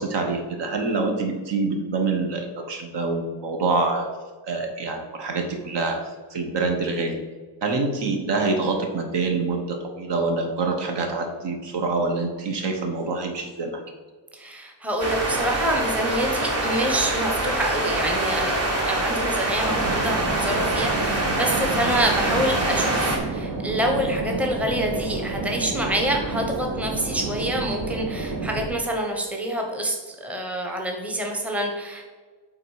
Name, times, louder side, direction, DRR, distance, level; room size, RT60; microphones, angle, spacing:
voice 1, 0.0-4.1 4.4-6.0 6.3-7.2 7.6-13.8, right 3 dB, 65° right, 4 dB, 1.3 m, -26 dB
voice 2, 14.3-32.1, right 1 dB, 5° right, 1 dB, 0.8 m, -27 dB
sound 1, 15.0-23.2, right 2 dB, 35° right, 1.3 m, -25 dB
sound 2, 19.6-28.7, right 3 dB, 90° right, 2.2 m, -30 dB
8.6 x 3.8 x 4.8 m, 1.5 s
wide cardioid pair, 180°, 44 cm